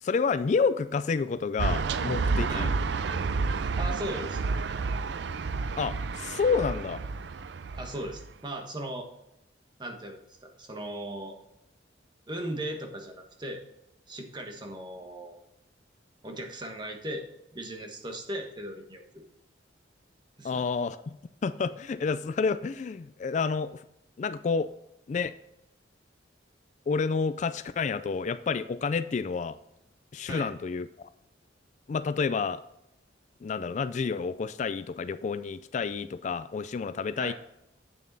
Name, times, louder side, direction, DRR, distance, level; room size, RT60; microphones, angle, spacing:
voice 1, 0.0-2.7 5.8-7.0 20.4-21.2 21.4-23.8 24.2-24.7 25.1-25.3 26.9-29.6 30.1-30.9 31.9-32.6 33.4-37.3, left 5 dB, 40° left, 13 dB, 0.3 m, -29 dB
sound 1, 1.6-8.3, right 4 dB, 70° right, 0.4 m, -30 dB
voice 2, 3.8-4.5 7.7-9.1 9.8-11.4 12.3-13.6 14.1-15.4 16.2-17.2 17.5-19.2 20.4-20.7 30.2-30.5 37.2-37.3, right 1 dB, 25° right, 3 dB, 1.2 m, -38 dB
8.4 x 6.9 x 4.0 m, 0.86 s
head